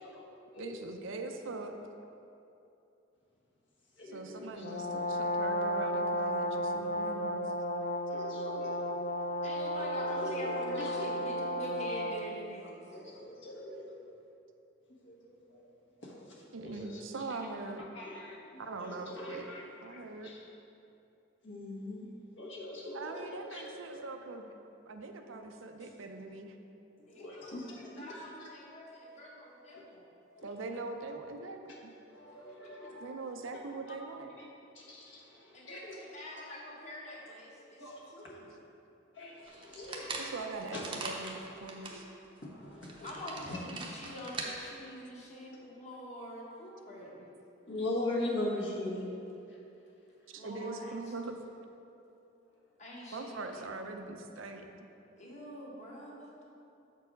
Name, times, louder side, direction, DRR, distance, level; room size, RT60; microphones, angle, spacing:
voice 1, 0.5-1.7 4.0-7.5 16.5-17.8 18.6-19.5 19.8-20.3 22.9-24.5 24.9-26.5 30.4-31.9 33.0-34.3 40.2-42.1 47.5-47.7 50.3-51.3 53.1-54.9, right 3 dB, 85° right, 5 dB, 0.6 m, -42 dB
voice 2, 4.0-4.7 8.1-8.8 10.0-11.3 12.9-14.0 15.0-15.6 16.0-17.2 17.9-20.4 21.4-22.1 22.4-24.1 27.1-28.5 29.7-29.8 30.3-30.5 32.1-33.1 34.7-36.0 37.8-38.4 39.1-40.3 40.7-40.8 42.4-43.0 43.5-43.6 47.7-49.1, left 1 dB, 65° left, -4 dB, 1.4 m, -41 dB
Brass instrument, 4.6-12.4, equal, 50° left, 0.4 m, -33 dB
voice 3, 9.4-12.8 25.8-25.9 27.1-30.0 32.8-32.9 35.5-37.8 38.1-38.5 43.0-47.3 50.3-51.1 52.8-53.7 55.2-56.3, left 1 dB, 35° left, -3 dB, 1.2 m, -45 dB
sound 1, 39.5-42.0 42.4-42.5 42.8-44.5, right 3 dB, 25° right, 0.6 m, -41 dB
7.0 x 4.6 x 5.2 m, 2.8 s
head